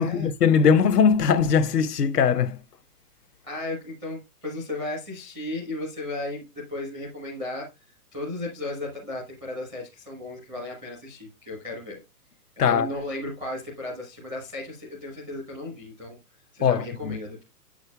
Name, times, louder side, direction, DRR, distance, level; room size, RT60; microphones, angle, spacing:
voice 1, 0.0-2.6 12.6-12.9 16.6-17.2, left 6 dB, 80° left, 1.0 m, -20 dB
voice 2, 3.4-7.8 8.1-12.0 12.6-16.2 16.5-17.4, left 2 dB, 5° left, 0.5 m, -35 dB
8.3 x 6.3 x 2.3 m
hypercardioid pair, 160°, 47 cm